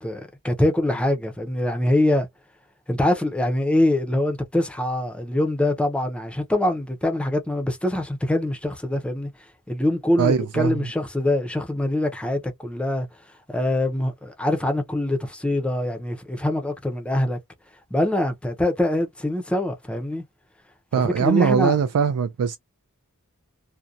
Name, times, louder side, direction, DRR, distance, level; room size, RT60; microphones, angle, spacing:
voice 1, 0.0-2.3 2.9-9.3 9.7-13.1 13.5-17.4 17.9-20.2 20.9-21.8, left 1 dB, 5° left, 0.5 m, -24 dB
voice 2, 10.2-10.8 20.9-22.6, right 6 dB, 75° right, 0.3 m, -21 dB
2.7 x 2.1 x 2.3 m
head